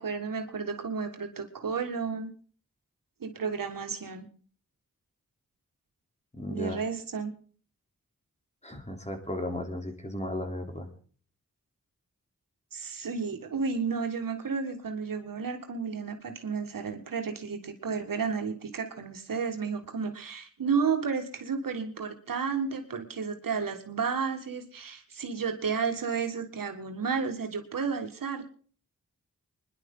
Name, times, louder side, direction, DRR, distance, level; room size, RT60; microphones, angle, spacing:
voice 1, 0.0-2.3 3.2-4.3 6.5-7.3 12.7-28.5, right 5 dB, 90° right, 5 dB, 1.8 m, -32 dB
voice 2, 6.3-6.8 8.6-10.9, left 1 dB, 20° left, 4 dB, 3.2 m, -35 dB
24.5 x 11.0 x 3.8 m, 0.43 s
cardioid pair, 55°, 32 cm